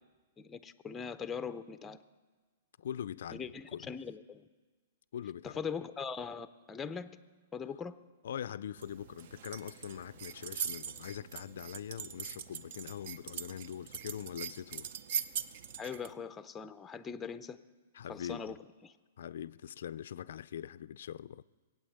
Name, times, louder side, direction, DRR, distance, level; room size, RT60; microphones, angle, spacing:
voice 1, 0.4-2.0 3.3-4.5 5.4-7.2 7.5-8.0 15.8-17.6 18.1-18.9, left 6 dB, 10° left, 0.5 m, -41 dB
voice 2, 2.8-3.9 5.1-5.6 8.2-14.9 17.9-18.5 19.2-21.4, left 9 dB, 70° left, 0.4 m, -42 dB
sound 1, 8.8-16.1, right 8 dB, 50° right, 0.6 m, -42 dB
21.0 x 8.8 x 7.8 m
hypercardioid pair, 160°, 0 cm